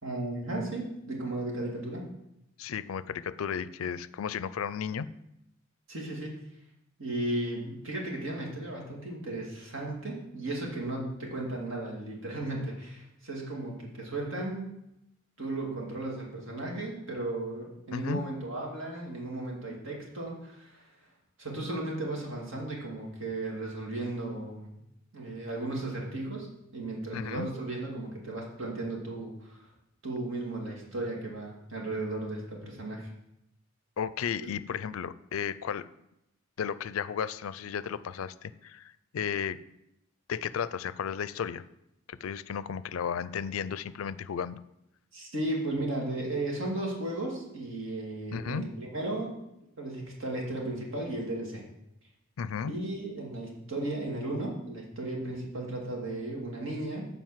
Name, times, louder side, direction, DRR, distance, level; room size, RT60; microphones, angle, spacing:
voice 1, 0.0-2.0 5.9-6.4 7.0-14.7 15.4-20.9 21.4-24.8 25.1-29.7 30.0-33.1 45.1-49.4 49.8-51.6 52.7-57.1, right 2 dB, 70° right, -2 dB, 2.4 m, -35 dB
voice 2, 2.6-5.1 17.9-18.2 27.1-27.5 34.0-35.9 36.6-39.6 40.3-41.7 42.1-44.6 48.3-48.6 52.4-52.7, left 7 dB, 85° left, 16 dB, 0.4 m, -34 dB
7.6 x 5.3 x 7.3 m, 0.86 s
head